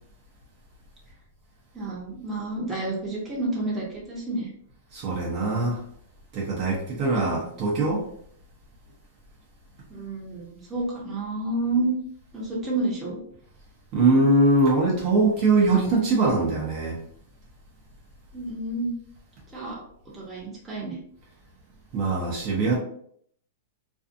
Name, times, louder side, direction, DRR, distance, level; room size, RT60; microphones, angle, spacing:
voice 1, 1.7-4.5 9.9-12.0 12.3-13.2 18.3-19.0 19.5-19.8 20.1-21.0, right 2 dB, 10° right, -5 dB, 0.8 m, -29 dB
voice 2, 4.9-5.8 6.3-8.0 13.9-17.0 21.9-22.8, right 2 dB, 40° right, -4 dB, 0.7 m, -22 dB
2.6 x 2.3 x 2.5 m, 0.64 s
hypercardioid pair, 150°, 0 cm